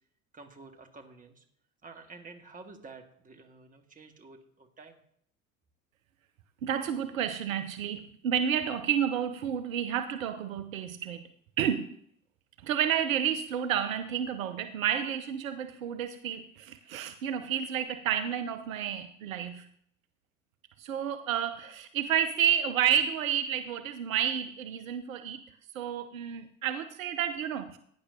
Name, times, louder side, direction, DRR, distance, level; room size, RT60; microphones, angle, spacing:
voice 1, 0.3-1.5 1.8-5.0, right 3 dB, 20° right, 4 dB, 1.8 m, -50 dB
voice 2, 6.6-11.2 11.6-12.0 12.6-19.7 20.8-25.4 25.7-27.8, right 9 dB, 70° right, 10 dB, 0.8 m, -30 dB
17.5 x 9.9 x 2.7 m, 0.66 s
figure-of-eight pair, 70°, 42 cm